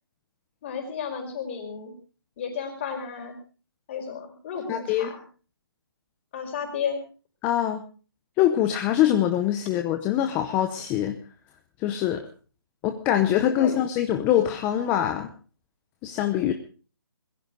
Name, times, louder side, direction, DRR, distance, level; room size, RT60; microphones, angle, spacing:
voice 1, 0.6-1.9 2.4-3.4 3.9-5.2 6.3-7.0 13.6-13.7, left 7 dB, 30° left, 5 dB, 4.7 m, -33 dB
voice 2, 4.7-5.1 7.4-7.8 8.4-11.2 11.8-12.3 12.8-15.3 16.0-16.5, left 11 dB, 10° left, 6 dB, 0.7 m, -23 dB
21.5 x 15.0 x 3.9 m, 0.37 s
hypercardioid pair, 165°, 13 cm